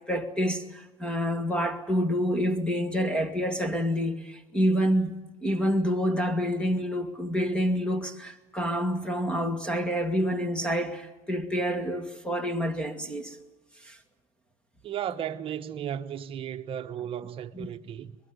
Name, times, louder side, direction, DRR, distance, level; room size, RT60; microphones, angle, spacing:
voice 1, 0.1-5.2 5.4-13.4 13.8-14.0 17.5-17.7, equal, 5° left, 1.9 m, -28 dB
voice 2, 14.8-18.2, right 9 dB, 35° right, 1.2 m, -35 dB
23.0 x 21.0 x 9.6 m
cardioid pair, 155°, 15 cm